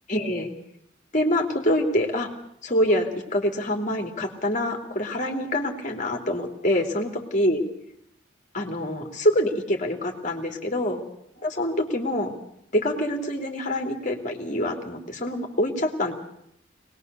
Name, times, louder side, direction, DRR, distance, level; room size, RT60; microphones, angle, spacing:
voice 1, 0.1-0.5 1.1-2.3 2.6-7.6 8.5-11.0 11.4-12.3 12.7-16.1, left 1 dB, 40° left, 3 dB, 3.0 m, -25 dB
23.5 x 20.0 x 6.8 m, 0.75 s
head